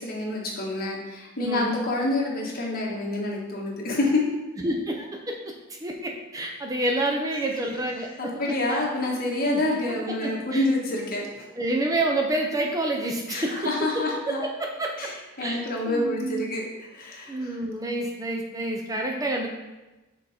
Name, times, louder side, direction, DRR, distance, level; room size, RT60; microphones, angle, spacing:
voice 1, 0.0-4.2 8.2-11.5 13.3-14.4 15.0-15.1 15.4-16.6 16.9-17.6, left 2 dB, 45° left, -2 dB, 1.3 m, -27 dB
voice 2, 4.6-5.5 5.8-8.8 9.4-10.6 11.6-15.1 15.4-16.5 17.3-19.5, right 1 dB, 15° right, 1 dB, 0.5 m, -29 dB
6.2 x 3.7 x 4.2 m, 1.1 s
head